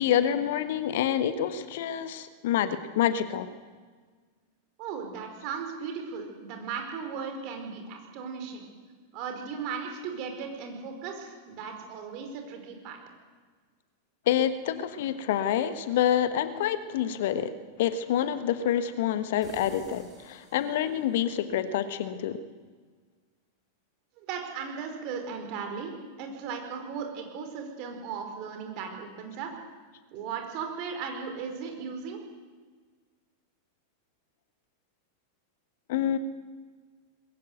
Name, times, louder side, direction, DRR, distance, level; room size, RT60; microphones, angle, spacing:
voice 1, 0.0-3.5 14.3-17.5 17.8-22.4 35.9-36.2, left 10 dB, 55° left, 12 dB, 1.2 m, -27 dB
voice 2, 4.8-8.7 9.1-13.0 24.2-29.5 30.1-32.2, right 6 dB, 45° right, 4 dB, 4.5 m, -37 dB
sound 1, 19.4-21.2, equal, ahead, 7.1 m, -51 dB
21.0 x 16.0 x 9.2 m, 1.5 s
figure-of-eight pair, 90°, 0 cm